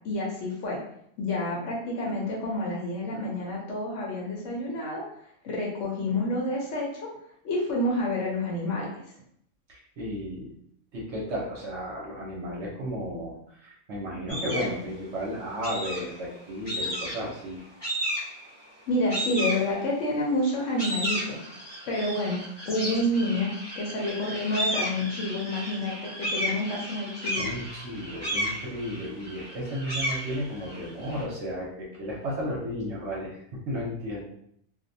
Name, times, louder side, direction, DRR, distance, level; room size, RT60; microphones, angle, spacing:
voice 1, 0.0-0.8 1.2-5.0 5.4-7.1 7.4-8.9 18.9-21.4 21.9-27.5, left 1 dB, 65° left, -3 dB, 0.9 m, -29 dB
voice 2, 9.7-10.5 10.9-13.4 13.6-17.6 27.4-33.4 33.7-34.2, equal, 60° right, -3 dB, 0.8 m, -33 dB
sound 1, 14.3-14.8 15.6-16.2 16.7-17.3 17.8-18.5 19.1-20.1 20.5-31.2, equal, 25° left, 0.6 m, -33 dB
2.4 x 2.1 x 2.6 m, 0.69 s
omnidirectional pair, 1.5 m